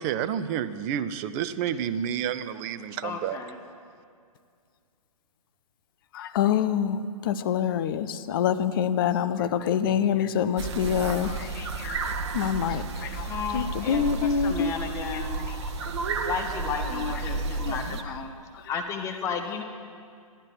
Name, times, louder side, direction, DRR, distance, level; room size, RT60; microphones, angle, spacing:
voice 1, 0.0-3.4, right 9 dB, 25° right, 13 dB, 0.4 m, -30 dB
voice 2, 3.0-3.6 13.2-15.5 16.2-18.3 18.7-19.6, left 6 dB, 15° left, 5 dB, 0.9 m, -33 dB
voice 3, 6.1-12.1 12.3-14.7, left 8 dB, 40° left, 12 dB, 0.6 m, -26 dB
sound 1, 10.6-18.0, right 4 dB, 50° right, 0.9 m, -32 dB
13.5 x 11.5 x 6.0 m, 2.3 s
figure-of-eight pair, 120°, 18 cm